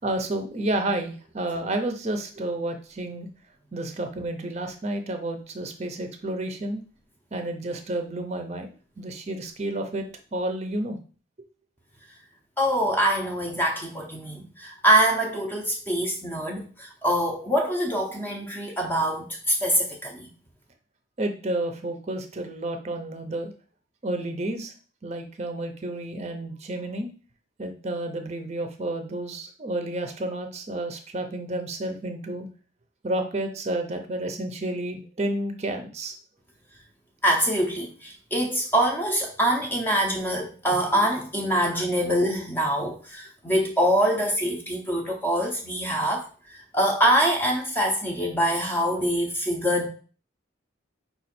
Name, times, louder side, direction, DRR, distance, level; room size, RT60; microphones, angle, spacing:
voice 1, 0.0-3.3 3.7-6.8 7.3-10.0 10.3-11.0 21.2-23.5 24.0-24.7 25.0-27.1 27.6-32.5 33.0-36.1, right 1 dB, 35° right, 6 dB, 0.6 m, -30 dB
voice 2, 12.6-20.3 37.2-49.9, right 1 dB, 10° left, 0 dB, 0.6 m, -24 dB
5.2 x 2.4 x 4.2 m, 0.38 s
head